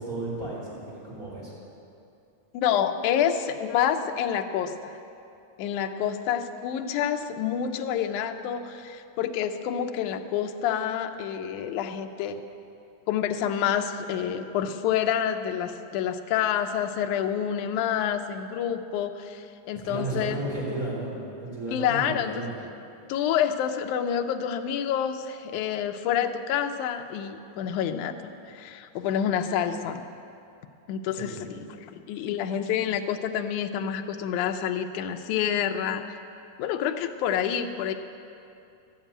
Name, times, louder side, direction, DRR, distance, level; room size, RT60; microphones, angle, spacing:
voice 1, 0.0-1.5 19.8-22.5 31.1-31.5, right 2 dB, 25° right, -7 dB, 4.3 m, -34 dB
voice 2, 2.5-4.9 5.6-12.4 13.1-20.4 21.7-22.4 23.1-28.2 28.5-30.0 30.9-36.2 36.6-37.9, left 9 dB, 75° left, 6 dB, 1.9 m, -28 dB
12.5 x 7.3 x 8.8 m, 2.6 s
omnidirectional pair, 3.8 m